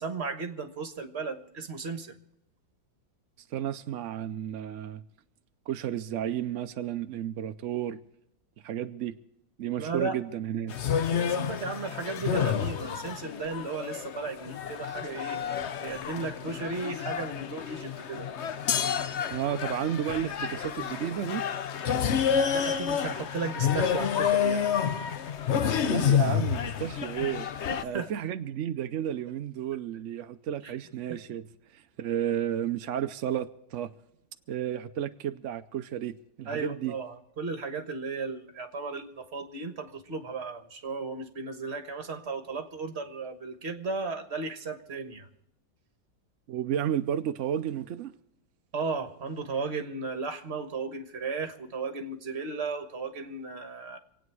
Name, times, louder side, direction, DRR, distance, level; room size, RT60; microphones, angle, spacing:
voice 1, 0.0-2.1 9.8-10.2 11.1-15.4 15.8-18.3 22.5-24.7 27.7-28.1 31.1-31.2 36.5-45.3 48.7-54.0, right 4 dB, 35° right, 1.4 m, -35 dB
voice 2, 3.5-5.0 5.7-8.0 8.6-9.2 9.6-10.8 19.3-21.4 25.8-27.5 27.8-33.9 34.5-36.9 46.5-48.1, right 10 dB, 85° right, 0.6 m, -32 dB
sound 1, 10.7-27.8, left 8 dB, 65° left, 0.7 m, -29 dB
26.5 x 9.1 x 4.7 m
omnidirectional pair, 2.1 m